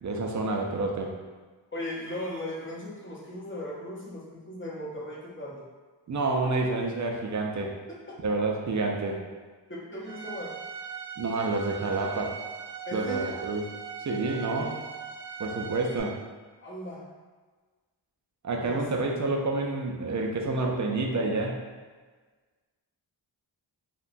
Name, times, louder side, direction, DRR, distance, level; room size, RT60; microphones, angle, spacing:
voice 1, 0.0-1.1 6.1-7.7 8.2-9.2 11.2-12.4 12.9-13.6 14.0-14.8 15.4-16.2 18.4-21.6, right 3 dB, 40° right, 0 dB, 0.4 m, -28 dB
voice 2, 1.7-5.6 9.7-10.5 12.9-13.4 16.6-17.1 18.6-18.8, left 1 dB, 25° left, -5 dB, 0.7 m, -37 dB
Bowed string instrument, 10.0-16.0, right 7 dB, 65° right, 0.9 m, -40 dB
2.8 x 2.1 x 2.5 m, 1.4 s
cardioid pair, 60°, 45 cm